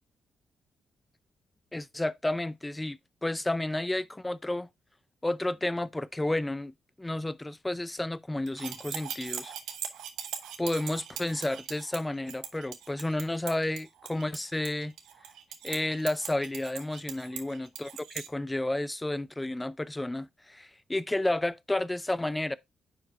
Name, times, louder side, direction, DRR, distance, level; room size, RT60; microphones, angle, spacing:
voice 1, 1.7-4.7 5.2-9.5 10.6-14.9 15.6-22.6, left 1 dB, 15° left, 0.6 m, -31 dB
sound 1, 8.5-18.3, right 9 dB, 80° right, 0.9 m, -40 dB
9.8 x 4.5 x 2.6 m
hypercardioid pair, 45°, 0 cm